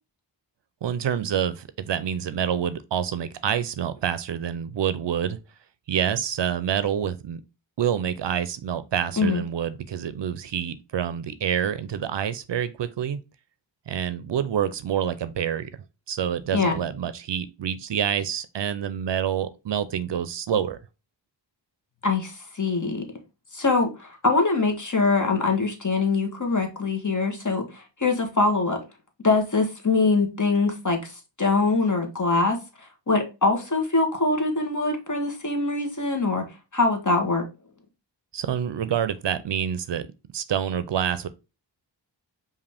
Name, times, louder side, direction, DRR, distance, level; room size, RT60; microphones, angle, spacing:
voice 1, 0.8-5.4 5.9-7.4 7.8-13.2 13.9-15.7 16.1-20.8 38.3-40.1 40.3-41.3, right 8 dB, 65° right, 0.5 m, -27 dB
voice 2, 22.0-23.1 23.5-28.8 29.2-32.6 33.1-36.4 36.7-37.4, left 3 dB, 40° left, 1.2 m, -23 dB
4.9 x 2.7 x 3.4 m
wide cardioid pair, 60°, 45 cm